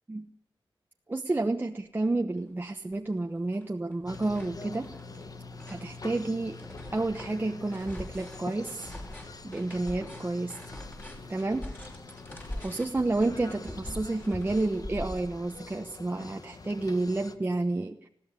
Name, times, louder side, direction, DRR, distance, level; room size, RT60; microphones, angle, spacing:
voice 1, 1.1-4.9 5.7-6.6 6.9-8.9 9.4-10.6 11.3-11.7 12.6-18.0, right 2 dB, 25° right, 4 dB, 1.1 m, -30 dB
sound 1, 2.5-2.6 2.9-3.7 3.9-15.6, left 1 dB, 20° left, 5.6 m, -43 dB
sound 2, 4.1-17.4, left 3 dB, 45° left, 1.4 m, -45 dB
20.5 x 16.0 x 9.8 m, 0.75 s
wide cardioid pair, 110°, 9 cm